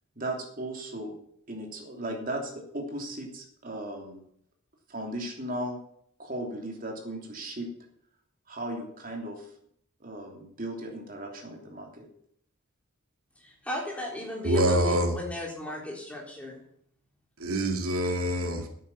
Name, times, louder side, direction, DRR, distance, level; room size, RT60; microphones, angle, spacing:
voice 1, 0.2-1.1 1.5-4.2 4.9-5.8 6.2-7.7 8.5-9.5 10.0-12.1, right 1 dB, 40° right, 2 dB, 3.1 m, -36 dB
voice 2, 13.4-16.6, left 1 dB, 5° left, -1 dB, 3.8 m, -35 dB
voice 3, 14.4-15.1 17.4-18.7, equal, 90° right, 4 dB, 2.3 m, -25 dB
11.5 x 9.2 x 7.3 m, 0.68 s
head